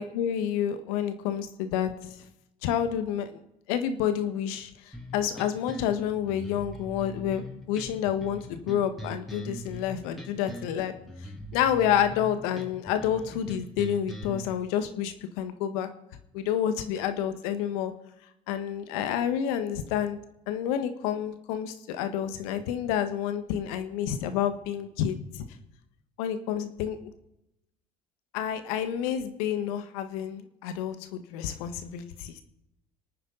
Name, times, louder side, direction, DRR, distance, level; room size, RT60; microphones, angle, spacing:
voice 1, 0.0-2.2 2.6-3.4 3.7-10.9 11.5-15.9 16.3-17.9 18.5-20.2 20.5-25.4 26.2-27.0 28.3-32.4, left 9 dB, 75° left, 9 dB, 1.6 m, -29 dB
sound 1, 4.9-14.5, left 1 dB, ahead, 3.5 m, -41 dB
25.0 x 9.5 x 4.0 m, 0.86 s
hypercardioid pair, 70°, 19 cm